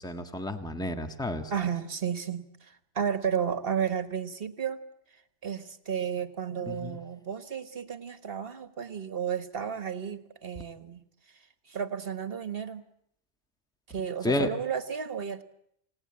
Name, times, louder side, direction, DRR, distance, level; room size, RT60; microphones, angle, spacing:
voice 1, 0.0-1.5 6.7-7.0 14.2-14.5, left 2 dB, 5° left, 6 dB, 1.6 m, -31 dB
voice 2, 1.5-4.8 5.4-11.0 11.7-12.8 13.9-15.4, right 7 dB, 55° right, 10 dB, 1.6 m, -32 dB
29.0 x 18.0 x 8.7 m, 0.74 s
omnidirectional pair, 1.1 m